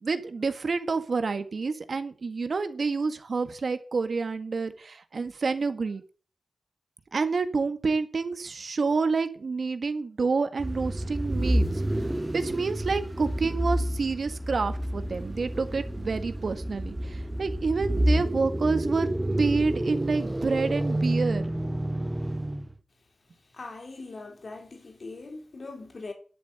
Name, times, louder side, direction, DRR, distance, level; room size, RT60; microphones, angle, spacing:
voice 1, 0.0-6.0 7.1-11.6 12.0-19.1 19.4-21.4, right 4 dB, 60° right, 1.7 m, -28 dB
sound 1, 10.6-22.8, right 1 dB, 15° right, 1.0 m, -29 dB
voice 2, 23.5-26.1, left 3 dB, 55° left, 3.4 m, -41 dB
11.0 x 7.8 x 8.7 m
wide cardioid pair, 115°, 0 cm